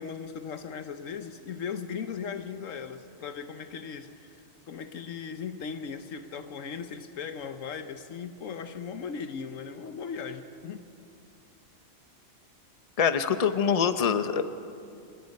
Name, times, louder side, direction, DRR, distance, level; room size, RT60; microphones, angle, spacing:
voice 1, 0.0-10.8, left 6 dB, 75° left, 9 dB, 1.2 m, -38 dB
voice 2, 13.0-14.4, left 7 dB, 35° left, 10 dB, 0.8 m, -24 dB
28.0 x 18.5 x 5.4 m, 2.5 s
omnidirectional pair, 1.4 m